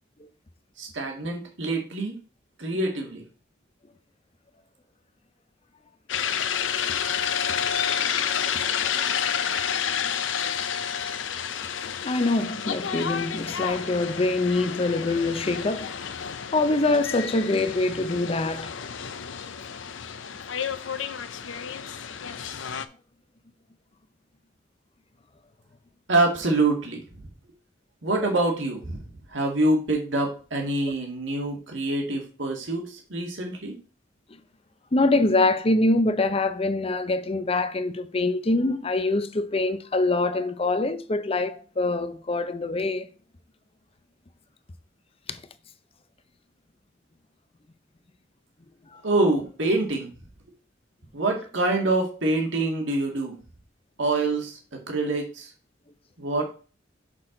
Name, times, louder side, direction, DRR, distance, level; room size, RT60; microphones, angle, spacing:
voice 1, 0.8-2.2 2.6-3.2 26.1-27.0 28.0-33.8 49.0-50.1 51.1-53.4 54.0-55.5 56.2-56.4, right 2 dB, 70° right, 2.0 m, -26 dB
sound 1, 6.1-22.9, left 8 dB, 75° left, 0.6 m, -30 dB
voice 2, 12.0-15.9 16.5-18.7 30.9-31.0 33.4-33.5 34.9-43.1 48.9-49.0, left 2 dB, 30° left, 0.6 m, -24 dB
6.2 x 6.1 x 3.8 m
head